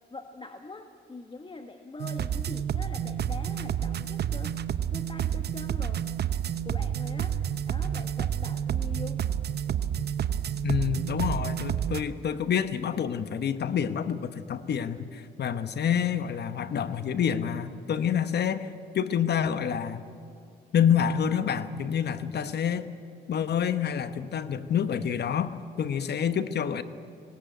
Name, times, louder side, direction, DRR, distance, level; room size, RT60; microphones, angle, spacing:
voice 1, 0.1-4.6 4.9-6.1 6.6-9.2, left 3 dB, 25° left, 6 dB, 1.3 m, -43 dB
sound 1, 2.0-12.0, right 9 dB, 60° right, 0.9 m, -30 dB
voice 2, 10.6-20.0 20.7-22.9 23.3-26.8, left 8 dB, 65° left, 12 dB, 1.2 m, -28 dB
19.5 x 18.0 x 9.2 m, 2.5 s
cardioid pair, 75°, 19 cm